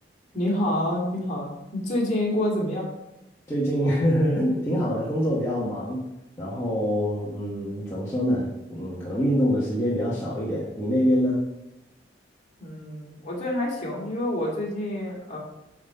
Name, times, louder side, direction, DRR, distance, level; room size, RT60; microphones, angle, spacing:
voice 1, 0.3-2.9 12.6-15.4, left 1 dB, 40° left, -3 dB, 2.4 m, -27 dB
voice 2, 3.5-6.0 6.4-11.4, equal, 15° left, -7 dB, 1.3 m, -25 dB
9.2 x 3.8 x 5.6 m, 0.93 s
head